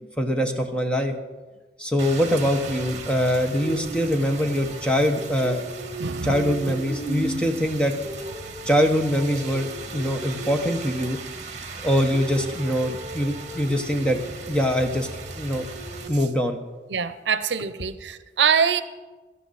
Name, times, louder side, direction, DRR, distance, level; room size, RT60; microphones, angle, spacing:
voice 1, 0.2-1.1 1.8-5.6 6.2-7.9 8.6-11.2 11.8-14.2 14.5-15.1 15.4-15.6 16.1-16.6, equal, 5° left, 4 dB, 1.1 m, -23 dB
Rain, 2.0-16.1, right 2 dB, 40° right, 1.8 m, -35 dB
voice 2, 6.0-6.6 16.9-18.8, right 6 dB, 80° right, 12 dB, 0.7 m, -24 dB
17.0 x 13.0 x 4.2 m, 1.2 s
head